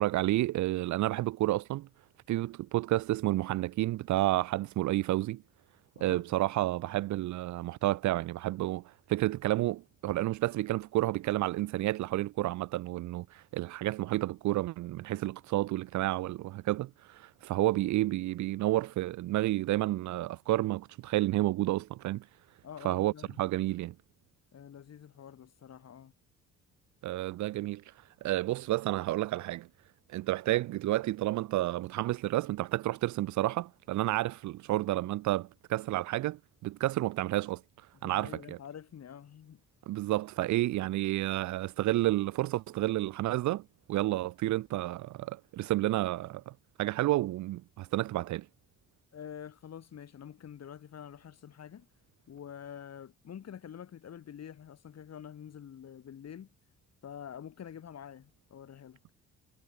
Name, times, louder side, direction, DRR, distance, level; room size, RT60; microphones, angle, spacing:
voice 1, 0.0-1.9 2.3-5.4 6.0-22.2 22.8-23.9 27.0-27.8 28.2-29.7 30.1-37.6 38.0-38.6 39.9-43.6 43.9-48.5, right 16 dB, 70° right, 0.5 m, -30 dB
voice 2, 22.6-23.4 24.5-26.1 37.9-39.6 49.1-51.9 52.3-56.5 57.0-59.0, left 8 dB, 55° left, 5.5 m, -47 dB
cardioid pair, 90°, 30 cm